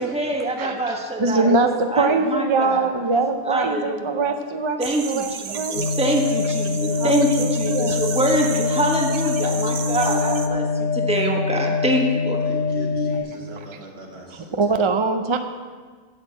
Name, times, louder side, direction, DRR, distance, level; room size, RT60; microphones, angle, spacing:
voice 1, 0.0-2.9 3.4-4.3 4.8-12.4, right 1 dB, 5° right, 0 dB, 1.3 m, -25 dB
voice 2, 0.6-0.9 1.2-5.8 6.9-8.0 14.5-15.4, right 3 dB, 35° right, 7 dB, 0.5 m, -23 dB
sound 1, 4.8-10.5, right 6 dB, 65° right, 0.9 m, -33 dB
sound 2, 5.7-13.2, left 4 dB, 65° left, 4.3 m, -24 dB
voice 3, 12.4-14.8, right 1 dB, 85° right, -3 dB, 2.6 m, -41 dB
10.5 x 6.5 x 7.6 m, 1.5 s
omnidirectional pair, 1.0 m